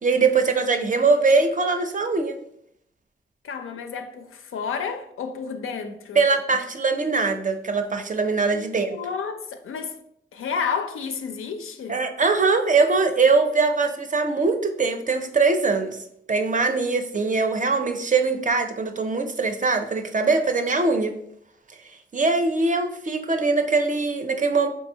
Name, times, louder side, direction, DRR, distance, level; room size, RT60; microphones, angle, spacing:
voice 1, 0.0-2.3 6.2-9.0 11.9-16.0 16.3-21.1 22.1-24.7, right 4 dB, 40° right, 0.5 m, -22 dB
voice 2, 3.4-6.2 8.5-10.0 10.3-12.0, left 6 dB, 85° left, 0.4 m, -31 dB
3.8 x 2.7 x 2.7 m
cardioid pair, 50°, 21 cm